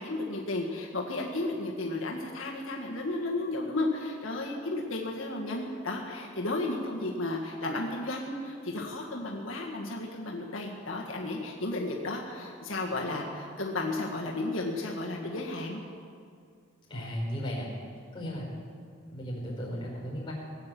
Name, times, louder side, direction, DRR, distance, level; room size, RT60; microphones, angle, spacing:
voice 1, 0.0-15.8, left 2 dB, 90° left, -1 dB, 1.7 m, -33 dB
voice 2, 16.9-17.7 18.1-18.5 19.0-20.3, equal, 25° left, -4 dB, 5.0 m, -35 dB
19.0 x 8.8 x 7.7 m, 2.3 s
head